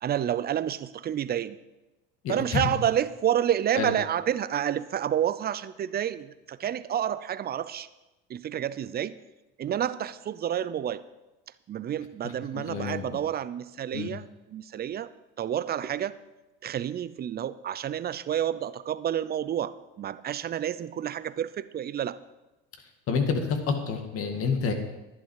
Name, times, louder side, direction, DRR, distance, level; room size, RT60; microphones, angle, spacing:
voice 1, 0.0-1.6 2.3-7.9 8.3-9.1 9.6-11.0 11.7-15.1 15.4-16.1 16.6-22.2, right 10 dB, 35° right, 16 dB, 0.6 m, -29 dB
voice 2, 2.2-2.7 3.8-3.9 12.5-13.2 13.9-14.1 23.1-24.7, left 5 dB, 50° left, 5 dB, 2.0 m, -28 dB
11.0 x 11.0 x 4.8 m, 1.0 s
supercardioid pair, 85°, 29 cm